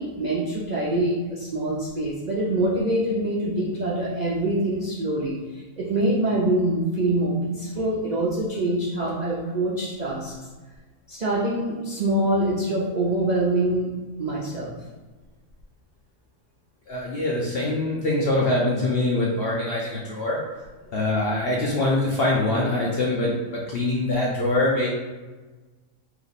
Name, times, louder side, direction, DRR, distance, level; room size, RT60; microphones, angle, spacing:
voice 1, 0.0-10.3 11.1-13.9 14.2-14.7, right 1 dB, 60° right, -6 dB, 0.4 m, -25 dB
voice 2, 16.9-20.4 20.9-24.9, left 2 dB, 60° left, -4 dB, 0.6 m, -24 dB
3.0 x 3.0 x 4.0 m, 1.3 s
omnidirectional pair, 1.6 m